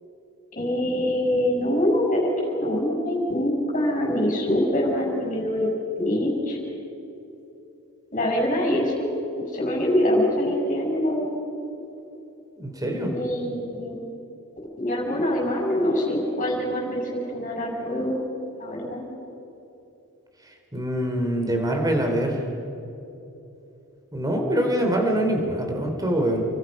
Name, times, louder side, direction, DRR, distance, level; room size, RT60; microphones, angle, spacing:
voice 1, 0.5-5.7 6.0-6.6 8.1-9.1 9.5-11.4 13.1-14.0 14.8-18.2 18.6-19.0, left 1 dB, 40° left, -2 dB, 7.0 m, -24 dB
voice 2, 12.6-13.1 20.7-22.4 24.1-26.4, right 1 dB, 15° right, 2 dB, 3.4 m, -24 dB
30.0 x 23.5 x 5.4 m, 2.9 s
head